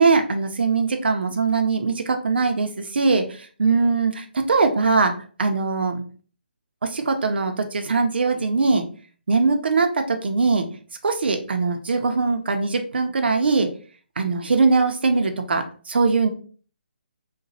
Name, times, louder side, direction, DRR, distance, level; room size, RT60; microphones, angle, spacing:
voice 1, 0.0-5.1 5.4-6.0 6.8-8.8 9.3-10.7 11.0-13.7 14.2-16.3, right 4 dB, 70° right, 5 dB, 0.6 m, -21 dB
3.9 x 2.2 x 2.6 m, 0.41 s
hypercardioid pair, 175°, 6 cm